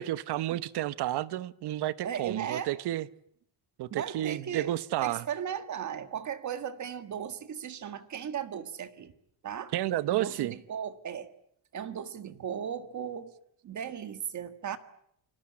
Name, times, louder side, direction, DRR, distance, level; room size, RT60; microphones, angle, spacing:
voice 1, 0.0-3.1 3.8-5.3 9.7-10.5, right 14 dB, 65° right, 1.0 m, -31 dB
voice 2, 2.0-2.7 3.9-4.8 5.0-9.1 9.4-9.7 10.1-11.3 11.7-13.3 13.6-14.8, right 8 dB, 40° right, 1.7 m, -36 dB
28.5 x 20.5 x 8.7 m
cardioid pair, 160°, 43 cm